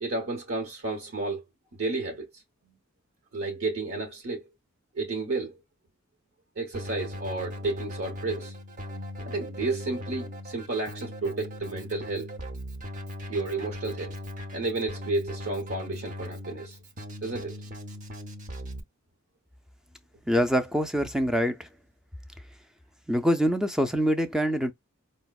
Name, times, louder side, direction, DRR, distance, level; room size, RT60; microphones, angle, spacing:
voice 1, 0.0-1.4 1.7-2.3 2.7-2.8 3.3-4.4 4.9-5.6 6.6-8.6 9.3-12.3 13.3-14.1 14.5-16.8 17.2-17.6, right 3 dB, 65° right, 0.9 m, -31 dB
Keyboard (musical), 6.7-18.8, left 1 dB, 40° right, 0.6 m, -39 dB
voice 2, 20.3-21.7 23.1-24.7, equal, 5° right, 0.3 m, -25 dB
4.8 x 2.1 x 2.3 m
head